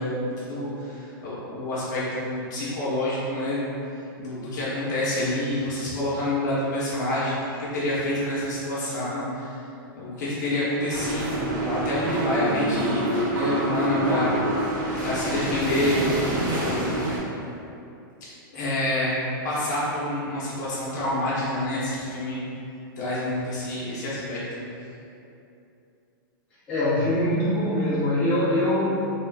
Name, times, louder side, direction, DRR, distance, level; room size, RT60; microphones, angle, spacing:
voice 1, 0.0-3.7 4.2-9.6 10.0-14.7 15.0-17.1 18.5-19.1 19.4-22.4 23.0-24.6, left 1 dB, 55° left, -8 dB, 1.1 m, -28 dB
sound 1, 10.9-17.2, right 1 dB, 60° right, 1.4 m, -27 dB
voice 2, 26.7-28.9, left 1 dB, 10° left, -14 dB, 1.2 m, -23 dB
3.5 x 2.4 x 3.5 m, 2.7 s
supercardioid pair, 165°, 12 cm